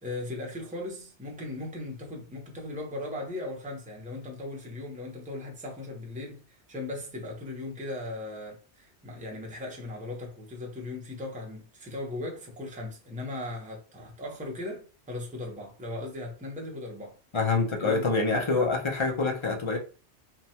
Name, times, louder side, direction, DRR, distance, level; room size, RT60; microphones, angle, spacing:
voice 1, 0.0-17.2 17.8-18.1, left 2 dB, 10° right, 0.5 m, -38 dB
voice 2, 17.3-19.8, left 3 dB, 40° left, 0.4 m, -26 dB
2.8 x 2.2 x 2.7 m
omnidirectional pair, 1.2 m